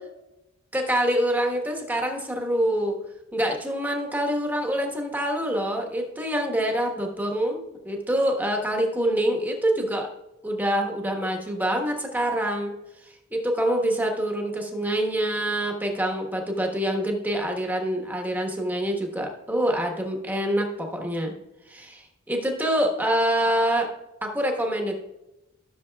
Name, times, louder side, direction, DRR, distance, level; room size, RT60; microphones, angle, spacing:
voice 1, 0.7-3.0 3.3-10.1 10.4-12.7 13.3-21.3 21.7-23.9 24.2-25.0, right 1 dB, 10° right, 2 dB, 1.2 m, -26 dB
14.0 x 6.8 x 2.3 m, 0.95 s
head